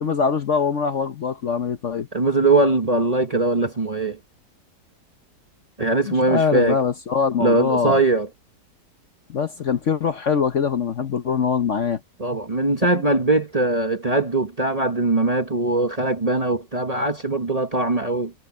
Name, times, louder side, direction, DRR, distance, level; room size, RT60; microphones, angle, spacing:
voice 1, 0.0-2.1 6.1-8.0 9.3-12.0 12.9-13.1, left 6 dB, 50° left, 1.1 m, -23 dB
voice 2, 2.1-4.2 5.8-6.8 7.4-8.3 12.2-18.3, right 2 dB, 25° right, 1.1 m, -21 dB
omnidirectional pair, 1.8 m